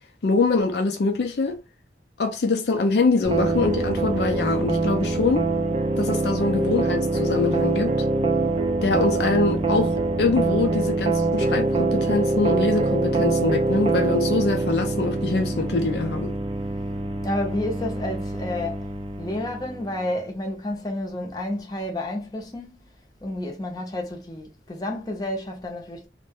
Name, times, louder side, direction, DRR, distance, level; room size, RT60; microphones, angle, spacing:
voice 1, 0.2-1.6 2.2-5.4 6.0-7.9 8.8-16.3, left 3 dB, 65° left, 0.4 m, -24 dB
sound 1, 3.2-20.0, right 3 dB, 30° right, 0.3 m, -24 dB
voice 2, 17.2-18.9 19.2-22.8 23.2-26.1, left 1 dB, 20° left, 0.6 m, -30 dB
2.5 x 2.1 x 3.4 m
head